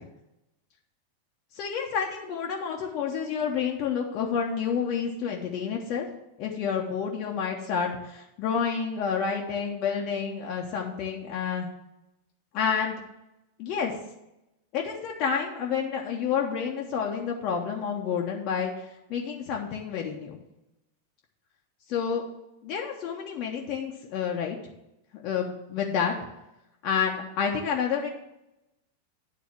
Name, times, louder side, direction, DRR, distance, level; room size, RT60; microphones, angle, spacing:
voice 1, 1.5-6.1 6.4-11.7 12.5-13.0 13.6-13.9 14.7-20.4 21.9-22.2 22.6-24.6 25.1-26.1 26.8-28.1, left 7 dB, 40° left, 0 dB, 1.1 m, -29 dB
9.5 x 4.1 x 7.4 m, 0.90 s
figure-of-eight pair, 90°, 0 cm